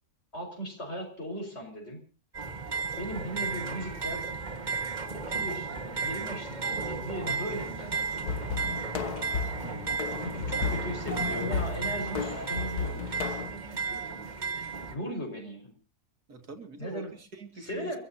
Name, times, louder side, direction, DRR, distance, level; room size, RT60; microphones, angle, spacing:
voice 1, 0.3-2.0 3.0-4.3 5.1-8.1 8.3-8.8 10.2-15.7 16.8-17.1 17.6-18.0, equal, 45° left, 2 dB, 5.9 m, -38 dB
sound 1, 2.3-14.9, right 4 dB, 30° right, 1.8 m, -34 dB
sound 2, 8.2-13.5, left 5 dB, 90° left, 1.6 m, -34 dB
voice 2, 9.6-10.7 16.3-18.0, right 2 dB, 90° right, 5 dB, 2.9 m, -44 dB
30.0 x 15.5 x 2.9 m, 0.37 s
omnidirectional pair, 1.6 m